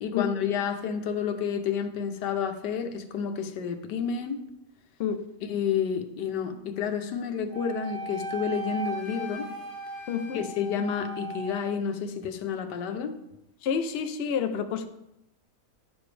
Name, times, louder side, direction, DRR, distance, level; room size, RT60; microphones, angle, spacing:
voice 1, 0.0-4.4 5.5-9.5 10.3-13.1, left 7 dB, 90° left, 7 dB, 1.4 m, -30 dB
Wind instrument woodwind instrument, 7.5-11.8, right 1 dB, 40° right, 3.1 m, -37 dB
voice 2, 10.1-10.5 13.6-14.9, left 7 dB, 55° left, 7 dB, 0.7 m, -29 dB
11.0 x 7.0 x 3.3 m, 0.86 s
omnidirectional pair, 1.8 m